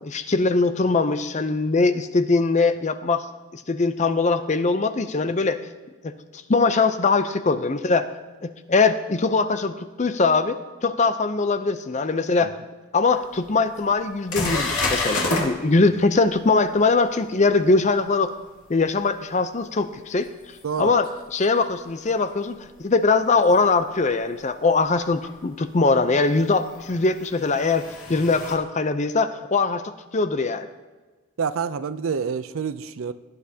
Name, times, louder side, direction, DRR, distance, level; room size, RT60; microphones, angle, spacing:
voice 1, 0.0-3.2 3.5-5.6 6.0-6.1 6.5-8.1 8.4-12.5 12.9-18.3 18.7-20.3 20.8-27.8 28.1-30.7, left 3 dB, 30° left, 10 dB, 0.5 m, -21 dB
sound 1, 13.2-13.3 13.8-13.9 14.3-15.5 20.6-20.7 23.4-23.5 25.2-25.3 26.7-28.5, left 2 dB, 75° left, 2.3 m, -27 dB
voice 2, 20.6-20.9 31.4-33.1, right 6 dB, 65° right, 14 dB, 0.4 m, -28 dB
17.5 x 9.7 x 2.8 m, 1.3 s
head